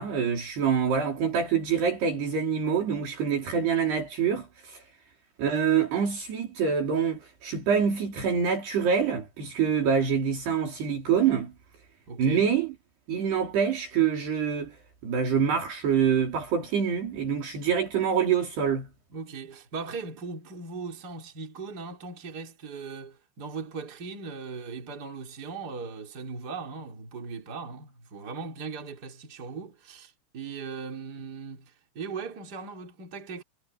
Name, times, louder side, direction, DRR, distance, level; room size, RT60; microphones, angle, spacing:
voice 1, 0.0-4.8 5.4-11.5 12.2-12.7 13.1-14.8 15.0-18.9, right 7 dB, 60° right, 5.8 m, -26 dB
voice 2, 12.1-12.4 19.1-33.4, right 4 dB, 25° right, 3.4 m, -39 dB
omnidirectional pair, 5.4 m